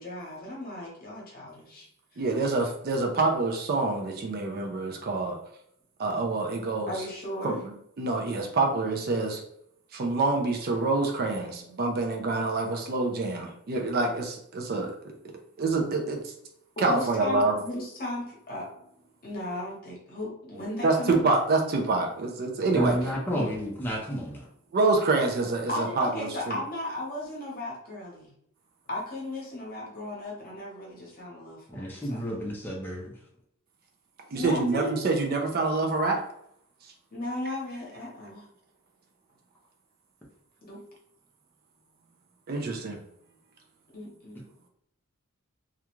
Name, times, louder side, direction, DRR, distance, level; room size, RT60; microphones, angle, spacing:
voice 1, 0.0-1.9 2.1-2.2 6.9-7.6 11.6-11.8 16.9-18.7 19.2-21.2 23.3-23.5 25.7-28.3 28.9-32.2 34.3-35.0 37.1-38.4 40.6-40.8 43.9-44.4, left 1 dB, 45° left, -3 dB, 0.9 m, -36 dB
voice 2, 2.2-5.4 6.0-7.0 7.4-9.4 9.9-14.9 15.6-16.3 16.8-17.5 20.8-23.0 23.4-23.5 24.7-26.6 34.3-36.2 42.5-43.0, right 3 dB, 45° right, 2 dB, 0.4 m, -26 dB
voice 3, 22.7-24.5 31.7-33.1, equal, 10° left, -3 dB, 0.5 m, -31 dB
2.4 x 2.3 x 2.9 m, 0.73 s
head